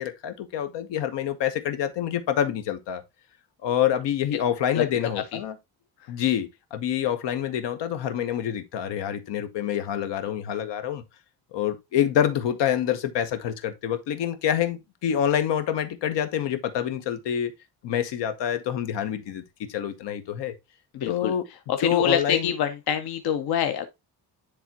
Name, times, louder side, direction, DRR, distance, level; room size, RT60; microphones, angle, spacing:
voice 1, 0.0-3.0 3.6-5.6 6.1-11.0 11.5-17.5 17.8-20.6 21.0-21.4 21.8-22.5, left 10 dB, 80° left, 1.1 m, -27 dB
voice 2, 20.9-21.3 21.7-23.9, left 8 dB, 65° left, 0.8 m, -25 dB
10.0 x 3.5 x 2.8 m
cardioid pair, 170°, 41 cm